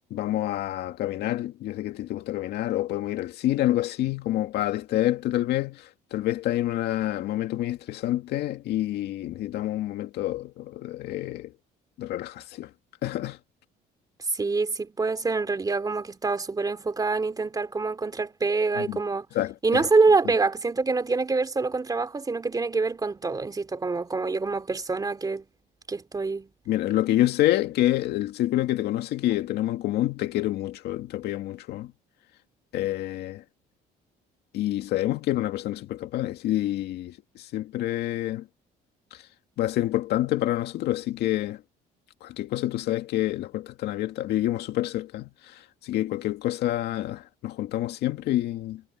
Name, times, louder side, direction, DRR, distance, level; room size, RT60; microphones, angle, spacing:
voice 1, 0.1-11.5 12.0-12.7 13.0-13.4 18.8-19.0 19.3-19.9 26.7-31.9 32.7-33.4 34.5-38.5 39.1-39.2 39.6-41.6 42.2-48.8, left 14 dB, 75° left, 2.2 m, -28 dB
voice 2, 14.3-19.3 19.6-25.4 25.9-26.5, right 3 dB, 20° right, 3.1 m, -25 dB
cardioid pair, 110°, 17 cm